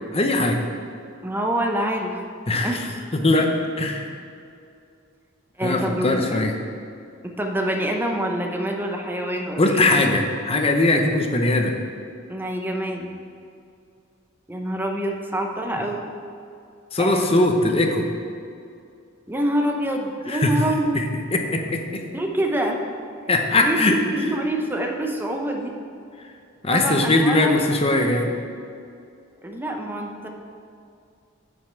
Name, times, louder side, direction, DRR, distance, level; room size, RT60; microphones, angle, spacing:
voice 1, 0.1-0.6 2.5-2.8 3.2-4.2 5.6-6.6 9.6-11.8 16.9-18.1 20.3-20.5 20.9-21.1 21.3-22.0 23.3-24.0 26.6-28.3, left 2 dB, 30° left, 3 dB, 0.8 m, -20 dB
voice 2, 1.2-2.8 5.6-6.5 7.2-10.0 12.3-13.1 14.5-16.0 17.0-17.4 19.3-20.9 22.1-22.8 23.5-25.7 26.7-27.6 29.4-30.3, right 1 dB, 10° right, 2 dB, 0.8 m, -26 dB
7.7 x 5.5 x 7.4 m, 2.4 s
head